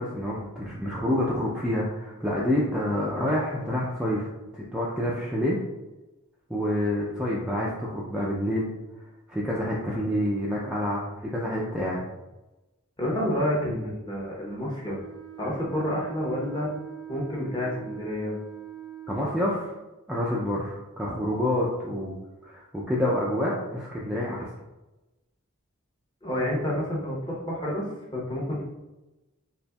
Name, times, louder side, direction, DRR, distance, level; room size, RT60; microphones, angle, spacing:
voice 1, 0.0-4.3 4.5-5.6 6.5-8.7 9.3-12.0 19.1-19.7 20.1-22.2 22.4-24.5, left 1 dB, 5° right, -5 dB, 0.4 m, -28 dB
voice 2, 13.0-15.0 15.4-16.7 17.1-18.4 26.2-27.8 28.1-28.6, left 1 dB, 20° left, -4 dB, 0.8 m, -29 dB
Wind instrument woodwind instrument, 14.8-19.7, right 11 dB, 80° left, 1.2 m, -42 dB
4.1 x 3.0 x 2.3 m, 1.0 s
head